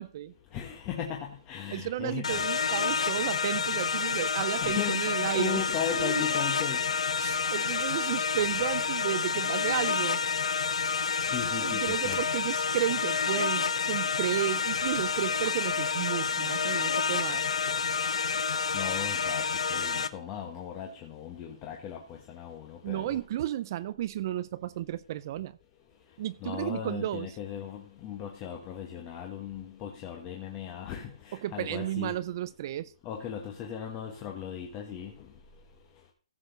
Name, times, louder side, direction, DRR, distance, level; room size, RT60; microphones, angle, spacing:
voice 1, 0.0-0.3 1.7-5.6 6.0-6.2 7.2-10.2 11.5-17.5 22.8-25.6 26.2-27.4 31.3-32.9, right 12 dB, 40° right, 0.5 m, -33 dB
voice 2, 0.5-2.4 4.6-5.0 5.3-7.1 11.3-12.2 18.7-19.4 19.7-23.2 26.4-32.1 33.0-35.1, left 9 dB, 25° left, 1.2 m, -37 dB
sound 1, 2.2-20.1, left 5 dB, 85° left, 0.7 m, -29 dB
sound 2, 9.6-10.3 11.7-12.5 13.9-14.3 15.2-16.3 17.1-17.9, right 9 dB, 20° right, 1.1 m, -53 dB
15.5 x 6.9 x 3.9 m
hypercardioid pair, 160°, 3 cm